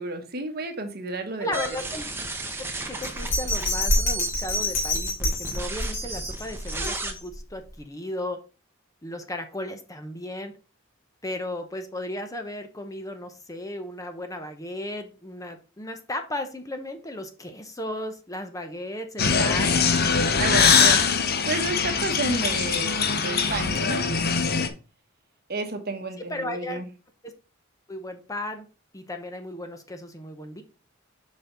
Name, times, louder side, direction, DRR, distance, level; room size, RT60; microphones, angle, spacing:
voice 1, 0.0-1.6 20.4-21.0 21.5-24.1 25.5-26.9, right 2 dB, 50° right, 6 dB, 1.2 m, -31 dB
voice 2, 1.4-2.1 2.9-8.4 9.0-10.5 11.2-19.8 20.5-21.1 26.3-26.8 27.2-27.3 27.9-28.6 28.9-30.6, left 1 dB, 15° left, 6 dB, 0.8 m, -35 dB
sound 1, 1.5-7.1, right 3 dB, 10° right, 1.0 m, -35 dB
Bell, 3.0-7.4 7.8-7.9, left 1 dB, 70° left, 3.2 m, -27 dB
sound 2, 19.2-24.7, left 6 dB, 50° left, 0.8 m, -22 dB
6.8 x 5.3 x 3.9 m, 0.33 s
head